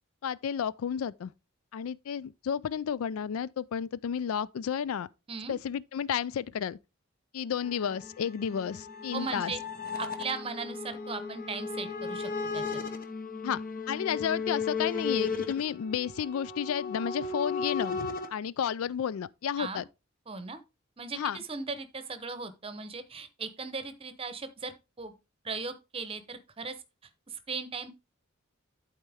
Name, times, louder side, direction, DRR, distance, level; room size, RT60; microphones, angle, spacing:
voice 1, 0.2-1.3 1.7-5.1 5.5-6.8 7.3-9.5 13.4-13.6 13.9-19.8 21.1-21.4, left 8 dB, 90° left, 0.4 m, -32 dB
sound 1, 7.6-18.3, left 5 dB, 40° left, 0.8 m, -35 dB
voice 2, 9.1-9.6 10.0-12.8 19.6-19.8 20.3-20.6 21.0-21.2 21.5-25.1 25.4-26.7 27.3-27.9, right 4 dB, 25° right, 0.8 m, -38 dB
11.5 x 4.3 x 3.4 m
head